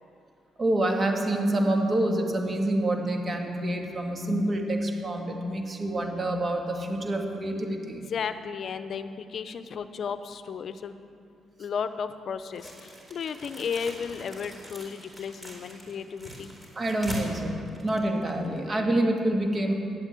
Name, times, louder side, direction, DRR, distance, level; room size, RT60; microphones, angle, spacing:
voice 1, 0.6-8.1 16.8-19.7, right 1 dB, 35° right, 2 dB, 1.9 m, -27 dB
voice 2, 7.9-10.9 11.6-16.5, left 6 dB, 55° left, 11 dB, 0.7 m, -34 dB
sound 1, 12.5-18.7, equal, 20° right, 4.0 m, -43 dB
11.5 x 8.2 x 8.3 m, 2.4 s
cardioid pair, 90°, 0 cm